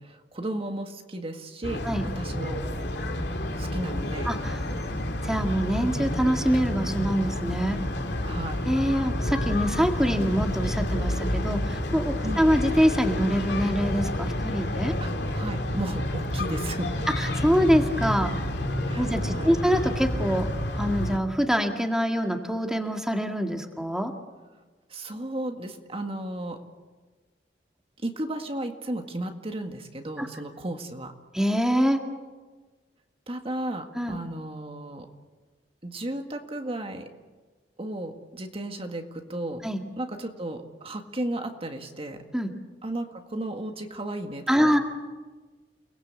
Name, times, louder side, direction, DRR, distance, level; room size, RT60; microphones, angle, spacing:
voice 1, 0.0-2.6 3.6-4.3 8.2-8.7 12.2-12.5 15.0-17.1 18.9-19.5 24.9-26.6 28.0-31.1 33.3-35.1 35.8-37.1 37.8-39.6 40.0-42.2 42.8-44.8, right 1 dB, 35° right, 5 dB, 1.9 m, -34 dB
sound 1, 1.6-21.2, left 1 dB, 70° left, 3.0 m, -29 dB
voice 2, 4.3-4.6 5.2-7.8 8.7-14.9 17.2-18.3 19.0-20.5 20.8-24.1 30.2-30.3 31.3-32.0 33.9-34.2 39.6-39.8 42.3-42.5 44.5-44.8, equal, 5° right, 3 dB, 2.0 m, -25 dB
29.5 x 20.0 x 8.4 m, 1.3 s
head